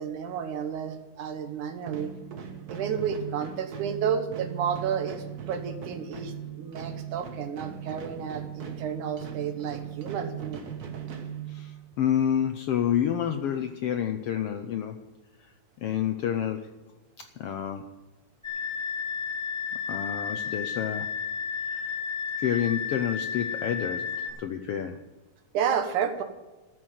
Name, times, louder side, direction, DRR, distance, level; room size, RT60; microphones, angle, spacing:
voice 1, 0.0-2.1 2.7-10.6 25.5-26.2, right 7 dB, 85° right, 7 dB, 2.7 m, -31 dB
sound 1, 1.8-12.0, right 8 dB, 65° right, 0.9 m, -39 dB
voice 2, 11.5-15.0 15.8-16.8 17.2-17.9 19.9-21.2 21.7-22.0 22.4-25.0, left 9 dB, 80° left, 7 dB, 1.3 m, -29 dB
sound 2, 18.4-24.3, left 6 dB, 5° right, 2.2 m, -32 dB
13.5 x 6.4 x 9.1 m, 1.2 s
omnidirectional pair, 3.4 m